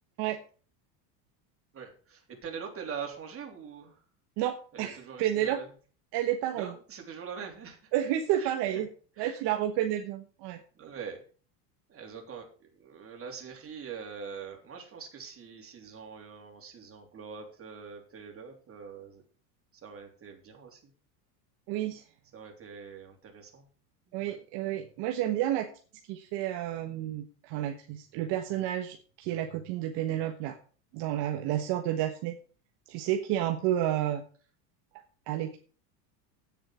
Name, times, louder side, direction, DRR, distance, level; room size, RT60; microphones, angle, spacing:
voice 1, 1.7-4.0 4.7-5.7 6.5-7.9 8.4-8.8 9.2-9.4 10.8-11.2 11.9-19.2 19.8-20.8 22.3-23.7 24.1-24.4, right 6 dB, 25° right, 2 dB, 3.4 m, -43 dB
voice 2, 4.4-5.6 6.1-6.7 7.9-8.9 9.2-10.6 21.7-22.0 24.1-25.7 26.1-30.6 30.9-32.4 32.9-34.2 35.3-35.6, right 12 dB, 55° right, 4 dB, 1.4 m, -30 dB
9.4 x 7.6 x 6.1 m, 0.40 s
supercardioid pair, 125°, 49 cm